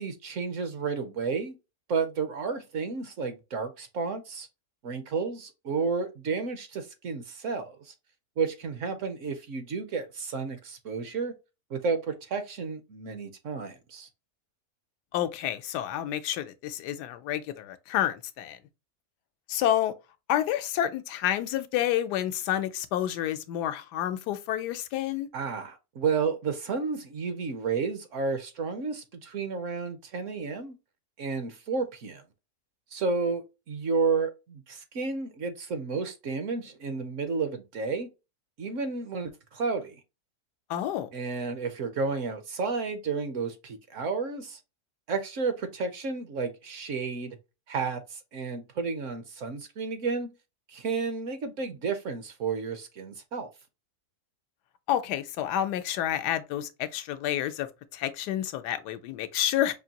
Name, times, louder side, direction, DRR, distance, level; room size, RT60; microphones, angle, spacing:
voice 1, 0.0-1.5 1.9-4.5 4.8-7.9 8.4-11.3 11.7-14.1 25.3-30.7 31.2-32.2 32.9-38.1 38.6-40.0 41.1-44.6 45.1-47.4 47.7-50.3 50.7-53.5, right 4 dB, 60° right, 0.9 m, -31 dB
voice 2, 15.1-18.6 19.5-19.9 20.3-25.3 40.7-41.1 54.9-59.8, left 11 dB, 90° left, 1.2 m, -29 dB
5.2 x 2.5 x 2.8 m
omnidirectional pair, 1.7 m